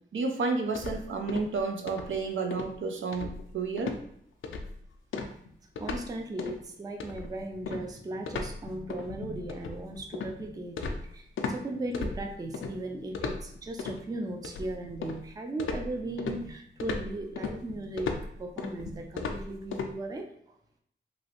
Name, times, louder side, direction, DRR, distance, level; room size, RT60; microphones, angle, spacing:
voice 1, 0.1-4.0, right 4 dB, 80° right, 5 dB, 0.5 m, -31 dB
sound 1, 0.7-1.6 1.9-2.2 2.5-2.7 3.1-3.5 3.8-4.0 4.4-4.8 5.1-6.1 6.4-6.6 7.0-11.6 11.9-12.7 13.1-14.0 14.4-15.3 15.6-19.9, left 4 dB, 85° left, 0.4 m, -36 dB
voice 2, 5.8-18.1 18.4-20.2, right 2 dB, 20° right, 3 dB, 0.3 m, -37 dB
3.0 x 2.6 x 2.8 m, 0.68 s
wide cardioid pair, 170°, 20 cm